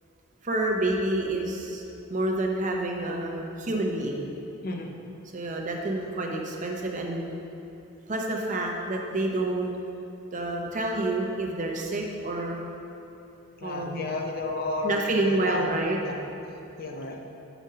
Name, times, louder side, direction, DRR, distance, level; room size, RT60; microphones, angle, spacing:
voice 1, 0.4-1.8 2.1-4.3 5.3-7.3 8.1-9.7 10.3-12.6 13.6-14.1 14.8-16.0, right 2 dB, 35° right, 0 dB, 0.7 m, -28 dB
voice 2, 13.6-15.7 16.0-16.2 16.8-17.2, left 2 dB, 45° left, 2 dB, 0.6 m, -32 dB
5.1 x 5.0 x 5.5 m, 2.9 s
head